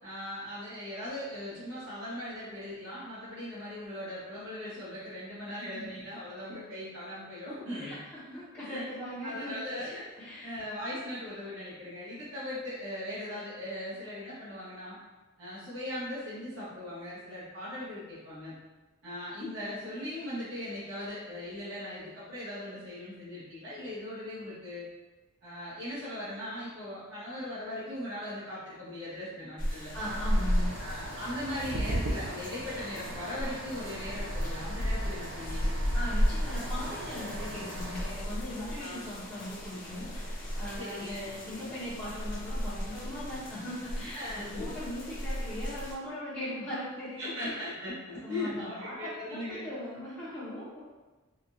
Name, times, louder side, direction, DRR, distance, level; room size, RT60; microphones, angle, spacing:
voice 1, 0.0-8.0 8.3-8.8 9.2-10.1 10.4-15.0 15.4-18.5 19.0-24.9 25.4-29.9 30.8-35.7 38.6-39.0 40.8-41.2 44.0-44.7 47.2-49.7, left 1 dB, 85° right, -11 dB, 1.2 m, -39 dB
voice 2, 7.7-9.5 10.2-10.5 29.9-30.8 35.9-47.6 48.2-50.8, left 1 dB, 15° left, -12 dB, 0.7 m, -39 dB
sound 1, 29.6-45.9, equal, 45° left, 0.8 m, -34 dB
sound 2, 30.0-38.1, right 1 dB, 60° right, 0.4 m, -39 dB
3.6 x 2.3 x 2.7 m, 1.2 s
head